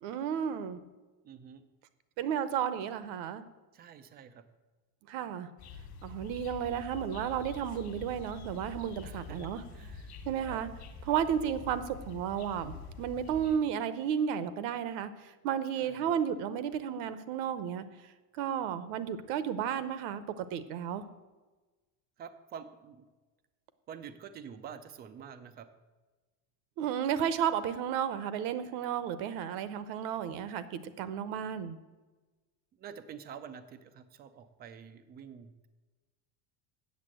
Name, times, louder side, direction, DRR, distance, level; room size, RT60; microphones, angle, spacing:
voice 1, 0.0-0.8 2.2-3.4 5.1-5.5 6.0-9.6 10.3-10.7 11.1-21.0 26.8-31.8, right 8 dB, 60° right, 13 dB, 0.9 m, -33 dB
voice 2, 1.2-1.6 3.7-4.4 9.0-10.2 10.4-10.6 15.8-16.1 22.2-23.1 23.9-25.7 32.8-35.7, right 7 dB, 20° right, 11 dB, 0.4 m, -48 dB
sound 1, 5.6-13.6, left 4 dB, 35° left, 1.4 m, -46 dB
8.4 x 7.3 x 7.5 m, 1.2 s
cardioid pair, 155°, 48 cm